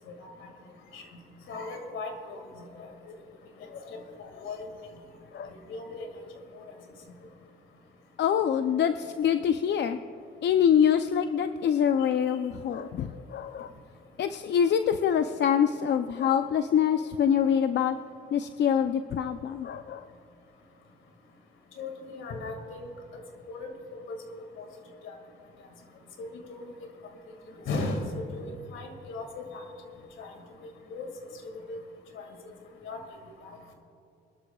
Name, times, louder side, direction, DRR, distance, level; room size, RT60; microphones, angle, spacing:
voice 1, 1.5-2.9 3.7-4.0 4.4-4.7 5.7-6.1 21.8-22.9 23.5-23.7 24.1-24.6 25.0-25.2 26.2-26.7 27.7-29.3 29.5-29.6 30.2-30.3 30.6-31.1 31.7-31.8 32.1-32.2 32.8-33.0 33.4-33.5, left 3 dB, 80° left, 4 dB, 2.1 m, -37 dB
voice 2, 8.2-10.0 10.4-13.7 14.2-18.0 18.3-20.0, left 8 dB, 60° left, 9 dB, 0.5 m, -25 dB
23.5 x 12.0 x 2.3 m, 3.0 s
cardioid pair, 90°, 20 cm